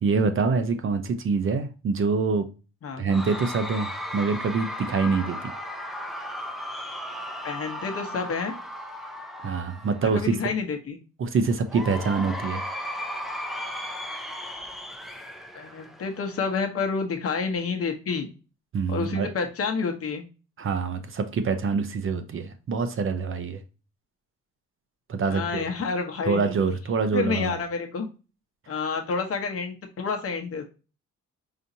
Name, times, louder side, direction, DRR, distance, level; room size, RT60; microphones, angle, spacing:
voice 1, 0.0-2.5 3.0-5.5 9.4-10.3 11.2-12.7 18.7-19.3 20.6-23.6 25.1-25.6 26.3-27.6, right 4 dB, 45° right, 0.6 m, -25 dB
Cheering / Crowd, 3.1-10.4 11.7-16.4, left 1 dB, ahead, 0.5 m, -36 dB
voice 2, 7.4-8.6 10.0-11.0 15.5-18.3 18.9-20.2 25.3-26.4 27.1-28.1 28.7-30.7, left 5 dB, 50° left, 1.0 m, -29 dB
4.9 x 2.8 x 2.6 m
cardioid pair, 120°, 30 cm